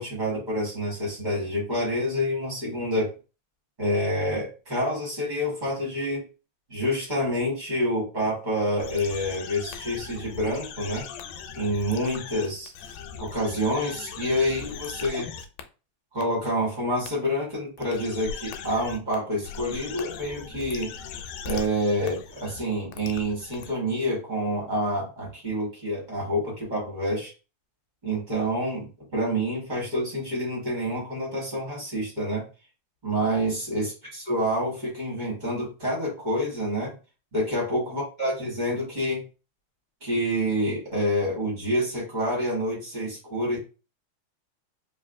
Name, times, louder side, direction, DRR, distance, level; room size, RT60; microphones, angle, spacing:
voice 1, 0.0-3.1 3.8-6.2 6.7-11.1 11.5-12.7 13.2-15.3 16.1-20.9 21.4-27.3 28.0-32.4 33.0-33.9 34.3-36.9 37.3-39.2 40.0-43.6, equal, 25° right, -3 dB, 0.9 m, -27 dB
sound 1, 8.8-15.6 16.2-16.3 17.1-17.2 17.8-19.2 19.4-23.7, left 6 dB, 85° left, 2.0 m, -39 dB
4.7 x 2.8 x 2.5 m, 0.33 s
omnidirectional pair, 3.4 m